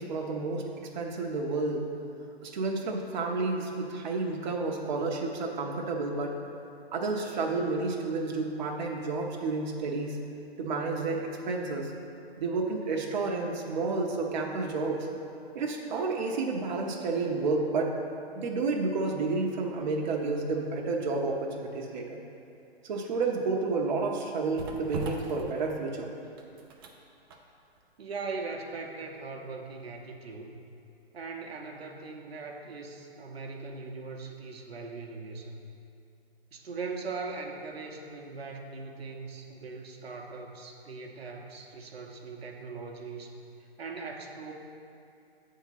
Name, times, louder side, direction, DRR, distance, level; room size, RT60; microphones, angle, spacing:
voice 1, 0.0-1.9 2.4-6.3 6.9-10.2 10.6-11.9 12.4-15.1 15.5-17.9 18.3-22.2 22.8-26.1, right 3 dB, 45° right, 0 dB, 0.8 m, -30 dB
sound 1, 23.5-31.3 31.6-31.8, right 4 dB, 25° right, 0.5 m, -44 dB
voice 2, 28.0-30.5 31.1-35.5 36.5-43.4 43.8-44.5, right 4 dB, 75° right, 1 dB, 0.9 m, -40 dB
7.9 x 3.7 x 5.7 m, 2.7 s
hypercardioid pair, 135°, 31 cm